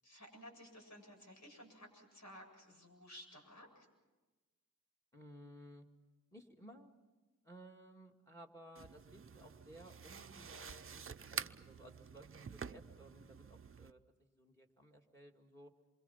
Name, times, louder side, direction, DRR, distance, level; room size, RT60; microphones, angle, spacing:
voice 1, 0.0-3.9, equal, 65° left, 2 dB, 7.9 m, -56 dB
voice 2, 5.1-5.9 6.3-6.9 7.4-15.7, equal, 10° left, 4 dB, 2.4 m, -58 dB
sound 1, 8.8-13.9, right 6 dB, 45° right, 0.7 m, -48 dB
27.5 x 25.0 x 5.9 m, 1.2 s
wide cardioid pair, 85°, 31 cm